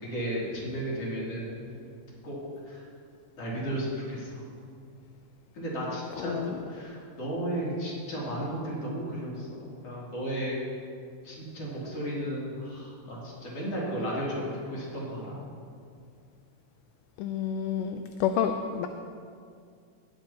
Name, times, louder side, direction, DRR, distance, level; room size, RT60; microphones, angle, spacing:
voice 1, 0.0-1.5 2.2-2.4 2.7-2.8 3.4-4.4 5.5-6.4 6.7-10.6 11.2-15.4, right 1 dB, 50° left, -7 dB, 3.7 m, -34 dB
voice 2, 6.2-6.6 17.2-18.9, left 8 dB, 80° left, 6 dB, 2.0 m, -29 dB
18.5 x 9.0 x 2.9 m, 2.3 s
omnidirectional pair, 3.8 m